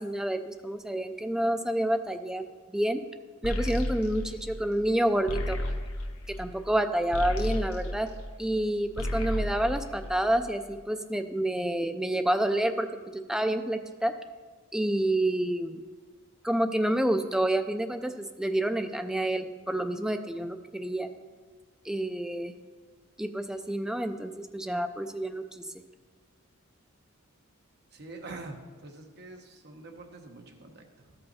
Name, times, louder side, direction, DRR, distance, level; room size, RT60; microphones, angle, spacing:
voice 1, 0.0-2.4 2.7-3.0 3.4-5.6 6.3-8.1 8.4-14.1 14.7-15.8 16.4-21.1 21.8-22.5 23.2-25.7, right 1 dB, 5° right, 7 dB, 0.3 m, -28 dB
sound 1, 3.4-8.6 8.9-10.6, left 1 dB, 80° left, 0.9 m, -33 dB
voice 2, 27.9-31.2, right 2 dB, 50° right, 3 dB, 1.0 m, -45 dB
13.0 x 5.5 x 4.2 m, 1.5 s
head